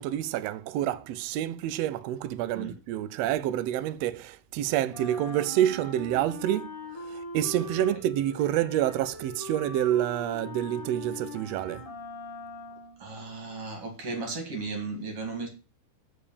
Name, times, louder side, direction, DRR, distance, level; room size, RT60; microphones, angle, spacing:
voice 1, 0.0-6.7 7.1-11.8, right 12 dB, 85° right, 1.5 m, -28 dB
Wind instrument woodwind instrument, 4.9-13.0, left 2 dB, 20° left, 0.9 m, -41 dB
voice 2, 13.0-15.5, right 3 dB, 50° right, 3.0 m, -35 dB
6.8 x 5.0 x 7.0 m
omnidirectional pair, 3.6 m